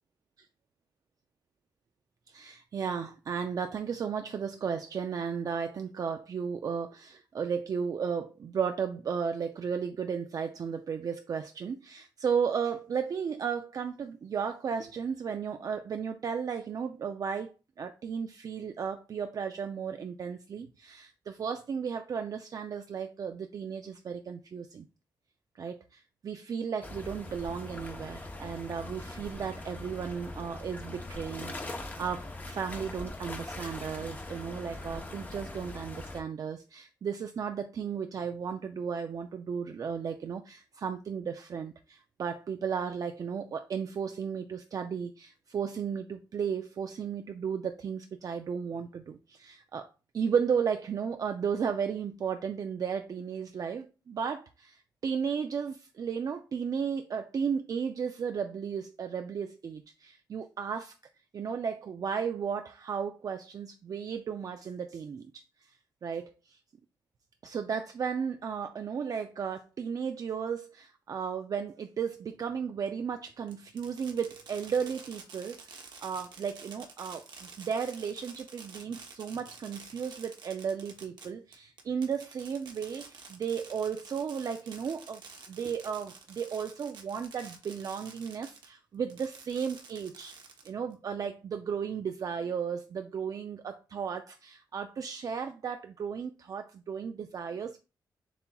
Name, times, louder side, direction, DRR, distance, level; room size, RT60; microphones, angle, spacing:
voice 1, 2.3-24.9 25.5-60.9 61.3-65.4 65.7-65.8 66.0-66.6 67.4-85.2 85.5-90.3 90.7-97.8, right 6 dB, 50° right, 0.3 m, -34 dB
sound 1, 26.8-36.2, left 2 dB, 20° left, 0.7 m, -41 dB
Fireworks, 73.5-88.7 89.1-90.9, right 5 dB, 70° right, 0.9 m, -49 dB
6.9 x 2.9 x 2.2 m
cardioid pair, 100°, 8 cm